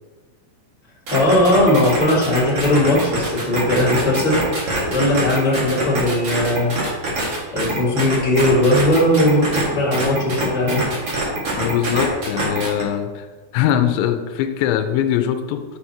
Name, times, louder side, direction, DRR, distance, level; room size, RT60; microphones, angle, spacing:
voice 1, 1.1-6.7 7.5-10.9, left 1 dB, 60° left, -8 dB, 0.5 m, -18 dB
sound 1, 1.1-9.6 9.9-12.8, right 2 dB, 65° right, 1.4 m, -24 dB
voice 2, 11.5-13.3 13.5-15.6, left 10 dB, 80° left, 7 dB, 2.7 m, -21 dB
11.5 x 6.1 x 2.9 m, 1.4 s
omnidirectional pair, 5.7 m